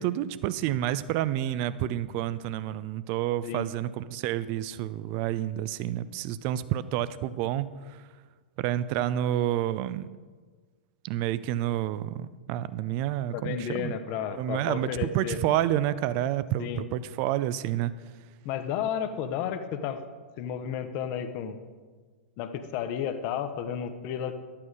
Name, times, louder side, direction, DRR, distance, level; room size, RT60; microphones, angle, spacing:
voice 1, 0.0-8.0 8.6-10.1 11.0-13.9 14.3-17.9, right 12 dB, 40° right, 16 dB, 0.5 m, -29 dB
voice 2, 13.3-15.4 16.6-16.8 18.4-20.0 20.4-21.6 22.4-24.3, left 8 dB, 40° left, 9 dB, 0.9 m, -32 dB
12.0 x 8.7 x 4.8 m, 1.5 s
figure-of-eight pair, 100°, 6 cm